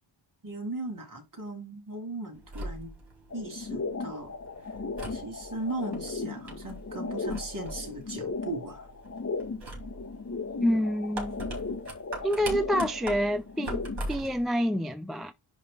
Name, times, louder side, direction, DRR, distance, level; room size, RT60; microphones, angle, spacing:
voice 1, 0.4-2.9 3.3-4.3 5.1-8.9, right 2 dB, 40° right, 3.1 m, -37 dB
sound 1, 2.4-14.5, right 1 dB, 55° right, 4.1 m, -42 dB
sound 2, 3.3-14.1, left 4 dB, 30° left, 1.2 m, -36 dB
voice 2, 10.6-11.4 12.2-15.3, equal, ahead, 0.4 m, -28 dB
10.5 x 3.5 x 3.8 m
wide cardioid pair, 125°, 50 cm